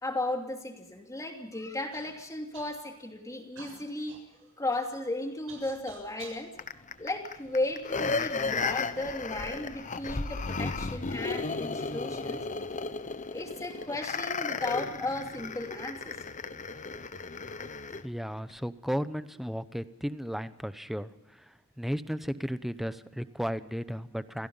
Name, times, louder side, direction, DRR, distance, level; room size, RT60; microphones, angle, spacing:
voice 1, 0.0-4.2 4.6-6.5 7.0-12.4 13.3-16.4 17.6-17.7, left 2 dB, 15° left, 3 dB, 3.0 m, -35 dB
Human voice / Cough, 1.9-2.1 2.5-3.0 3.6-6.4 7.1-8.0 8.7-8.8 9.5-9.9, right 4 dB, 65° right, 7.5 m, -51 dB
sound 1, 6.6-18.0 18.5-18.6, left 4 dB, 35° left, 0.9 m, -34 dB
voice 2, 18.0-24.5, equal, ahead, 13 dB, 0.8 m, -34 dB
28.0 x 17.5 x 5.7 m, 0.89 s
head